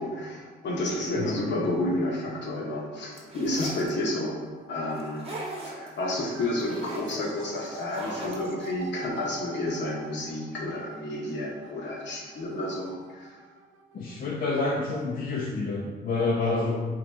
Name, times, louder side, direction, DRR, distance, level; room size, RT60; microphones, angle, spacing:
voice 1, 0.0-4.4 4.7-13.4, left 1 dB, 65° left, -2 dB, 1.0 m, -31 dB
sound 1, 3.1-3.9 5.0-5.9 6.3-7.1 7.7-8.7, right 2 dB, 30° right, 1.0 m, -39 dB
sound 2, 3.9-15.2, right 6 dB, 80° right, 0.5 m, -47 dB
voice 2, 13.9-16.9, left 3 dB, 45° left, -2 dB, 0.5 m, -28 dB
4.1 x 2.9 x 3.5 m, 1.4 s
cardioid pair, 90°, 20 cm